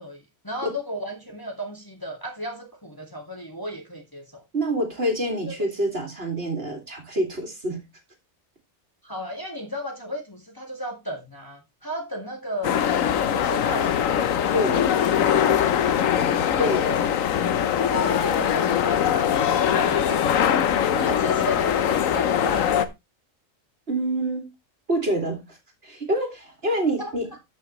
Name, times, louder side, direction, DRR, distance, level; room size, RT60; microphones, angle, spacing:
voice 1, 0.0-4.4 5.5-5.6 9.0-12.8 13.3-14.2 15.2-16.1 16.6-17.0 17.4-20.6 20.9-22.9 27.0-27.1, equal, 15° left, 1.9 m, -35 dB
voice 2, 4.5-7.8 14.5-14.8 16.6-16.8 23.9-24.5 24.9-25.6 25.8-27.3, right 1 dB, 50° right, 2.6 m, -26 dB
sound 1, 12.6-22.9, left 9 dB, 85° left, 1.2 m, -22 dB
13.5 x 5.9 x 3.1 m
omnidirectional pair, 1.3 m